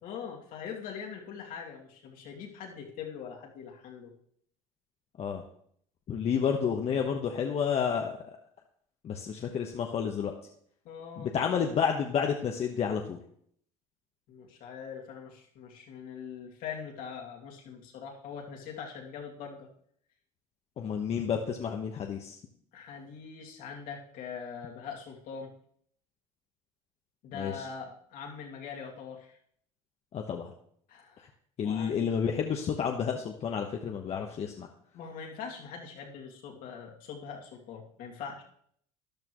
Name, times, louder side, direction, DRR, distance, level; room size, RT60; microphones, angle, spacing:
voice 1, 0.0-4.1 10.8-11.3 14.3-19.7 22.7-25.5 27.2-29.4 30.9-31.2 31.6-32.0 34.9-38.4, left 6 dB, 65° left, 0 dB, 2.6 m, -42 dB
voice 2, 6.1-8.4 9.0-10.3 11.2-13.2 20.8-22.4 27.3-27.7 30.1-30.5 31.6-34.7, left 7 dB, 40° left, 2 dB, 1.2 m, -30 dB
13.5 x 10.5 x 3.1 m, 0.65 s
supercardioid pair, 100°, 16 cm